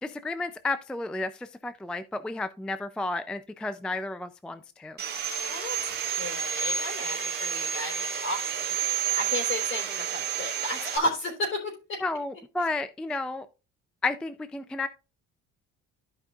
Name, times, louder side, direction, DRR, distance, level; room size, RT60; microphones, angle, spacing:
voice 1, 0.0-5.0 12.0-13.5 14.0-14.9, left 2 dB, 5° left, 0.3 m, -32 dB
Sawing, 5.0-11.0, right 8 dB, 35° right, 1.6 m, -30 dB
voice 2, 5.5-12.0 12.6-12.7, left 1 dB, 40° left, 3.4 m, -33 dB
14.5 x 5.3 x 2.3 m
cardioid pair, 165°, 29 cm